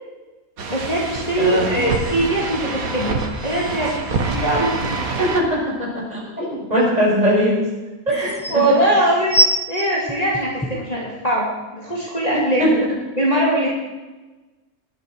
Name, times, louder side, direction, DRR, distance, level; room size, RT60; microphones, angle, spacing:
sound 1, 0.6-5.4, right 4 dB, 75° right, 1.9 m, -26 dB
voice 1, 0.7-5.0 8.1-9.4 9.7-12.8 13.2-13.7, right 1 dB, 25° left, -5 dB, 2.6 m, -21 dB
voice 2, 1.4-1.8 5.2-7.6 8.1-8.2 8.5-8.6 12.6-12.7, equal, 25° right, -6 dB, 6.5 m, -20 dB
sound 2, 6.0-6.1 7.7-7.8 8.1-8.6 9.3-10.9 11.6-11.7, right 1 dB, 5° left, 1.3 m, -21 dB
19.0 x 12.0 x 4.7 m, 1.2 s
omnidirectional pair, 1.5 m